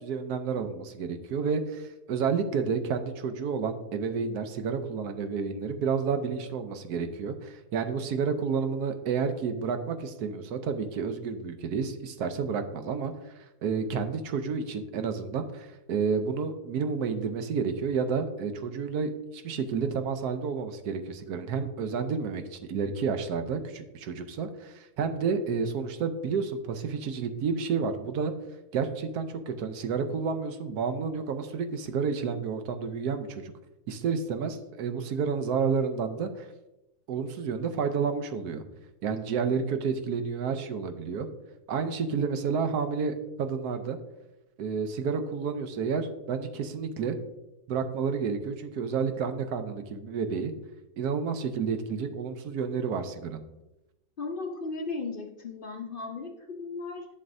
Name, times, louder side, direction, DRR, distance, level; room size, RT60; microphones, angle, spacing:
voice 1, 0.0-13.1 13.6-28.3 28.7-33.5 33.9-36.5 37.1-38.6 39.0-41.3 41.7-44.0 44.6-47.2 47.7-50.5 51.0-53.4, right 5 dB, 75° right, 8 dB, 1.2 m, -30 dB
voice 2, 54.2-57.1, left 3 dB, 55° left, 3 dB, 0.6 m, -36 dB
11.0 x 6.4 x 2.6 m, 0.96 s
omnidirectional pair, 1.7 m